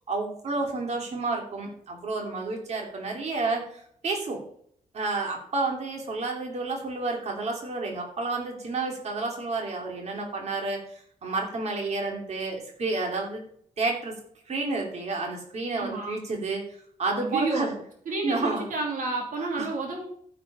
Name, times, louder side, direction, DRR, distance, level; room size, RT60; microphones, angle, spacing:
voice 1, 0.1-4.4 4.9-13.4 13.8-14.1 14.5-17.7 18.2-18.6 19.4-19.7, right 3 dB, 50° right, 1 dB, 2.8 m, -30 dB
voice 2, 15.7-16.2 17.2-17.8 18.1-20.0, right 3 dB, 75° right, 0 dB, 2.8 m, -30 dB
14.5 x 5.1 x 5.6 m, 0.64 s
wide cardioid pair, 170°, 14 cm